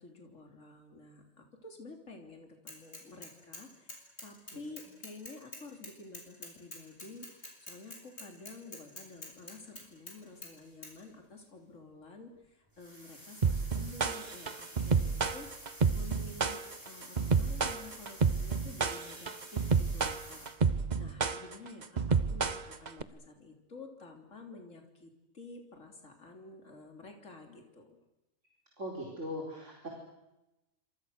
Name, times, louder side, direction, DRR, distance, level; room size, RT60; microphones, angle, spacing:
voice 1, 0.0-15.5 15.9-28.0, left 3 dB, 70° left, 3 dB, 3.6 m, -51 dB
Bicycle / Mechanisms, 2.7-3.6 3.9-10.2 10.4-10.5 10.8-10.9, left 2 dB, 55° left, 6.9 m, -46 dB
sound 1, 9.7-9.8 10.1-11.1 11.4-11.5 12.7-20.5, equal, 15° right, 7.3 m, -51 dB
sound 2, 13.4-23.0, right 5 dB, 35° right, 1.1 m, -29 dB
voice 2, 28.8-29.9, equal, 65° right, -1 dB, 4.9 m, -40 dB
29.0 x 26.5 x 6.6 m, 0.95 s
omnidirectional pair, 1.3 m